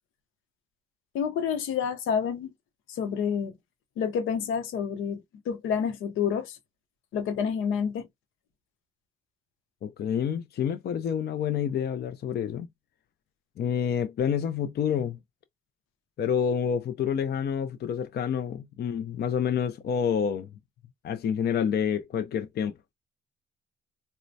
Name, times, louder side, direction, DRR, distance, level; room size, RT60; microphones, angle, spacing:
voice 1, 1.1-2.5 2.9-3.5 4.0-6.6 7.1-8.1, left 7 dB, 85° left, 0.8 m, -29 dB
voice 2, 9.8-12.7 13.6-15.2 16.2-20.5 21.0-22.7, left 8 dB, 55° left, 0.5 m, -28 dB
4.2 x 2.2 x 2.6 m
cardioid pair, 90°, 20 cm